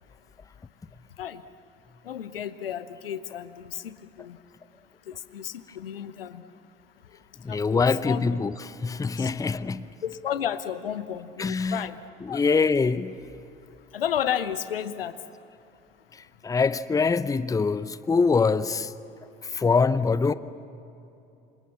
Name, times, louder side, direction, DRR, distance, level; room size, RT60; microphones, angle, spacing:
voice 1, 2.0-4.4 5.1-6.4 7.5-8.2 9.2-9.3 10.0-12.0 12.3-12.4 13.9-15.2, left 9 dB, 75° left, 1.0 m, -32 dB
voice 2, 7.4-9.9 11.4-11.9 12.2-13.2 16.1-18.9 19.4-20.3, left 4 dB, 10° left, 0.7 m, -24 dB
27.5 x 27.0 x 7.1 m
figure-of-eight pair, 60°, 29 cm